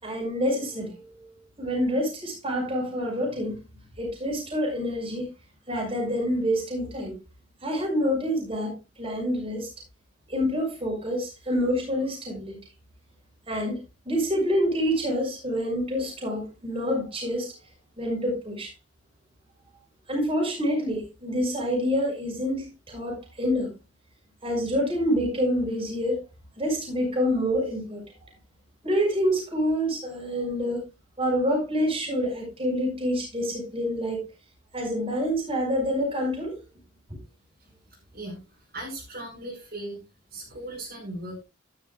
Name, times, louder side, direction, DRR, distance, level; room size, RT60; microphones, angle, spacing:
voice 1, 0.0-1.3 1.6-3.5 4.0-5.3 5.7-7.2 7.6-8.7 9.0-9.7 10.3-12.6 13.5-13.8 14.1-17.5 18.0-18.7 20.1-23.7 24.4-26.2 26.6-28.3 28.8-30.8 31.2-34.3 34.7-36.6, equal, 30° right, 5.4 m, -27 dB
voice 2, 38.1-40.0 40.3-41.4, right 1 dB, 55° right, 5.3 m, -38 dB
12.0 x 11.0 x 2.4 m
head